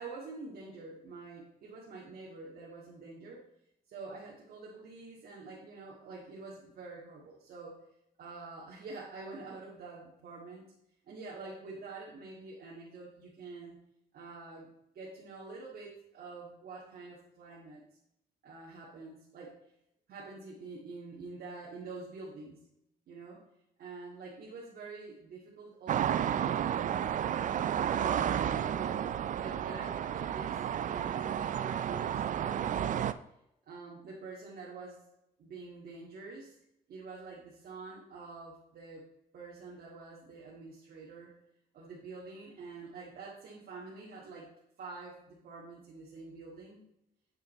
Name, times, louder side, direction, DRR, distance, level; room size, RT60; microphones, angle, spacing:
voice 1, 0.0-3.4 3.9-7.8 8.2-10.7 11.1-13.8 14.1-14.7 14.9-17.8 18.4-19.6 20.1-22.6 23.1-23.4 23.8-27.0 27.9-29.1 29.4-33.0 33.7-35.1 35.4-36.6 36.9-39.1 39.3-41.3 41.7-44.5 44.8-46.8, right 3 dB, 75° right, -5 dB, 2.0 m, -47 dB
sound 1, 25.9-33.1, right 9 dB, 55° right, 0.4 m, -32 dB
8.7 x 6.0 x 4.2 m, 0.80 s
cardioid pair, 130°, 16 cm